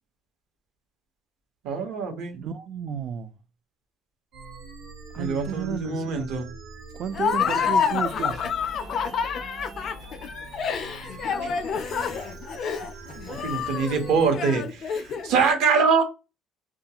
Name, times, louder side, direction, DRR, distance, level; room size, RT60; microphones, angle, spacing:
voice 1, 1.6-2.4 5.2-6.5 13.3-16.0, right 5 dB, 65° right, 0.9 m, -24 dB
voice 2, 2.3-3.3 5.1-6.3 6.9-8.5, right 7 dB, 40° right, 0.3 m, -32 dB
sound 1, 4.3-14.3, right 3 dB, 85° right, 1.1 m, -43 dB
Laughter, 7.1-15.4, left 6 dB, 35° left, 0.3 m, -28 dB
2.3 x 2.3 x 2.8 m
cardioid pair, 180°, 0 cm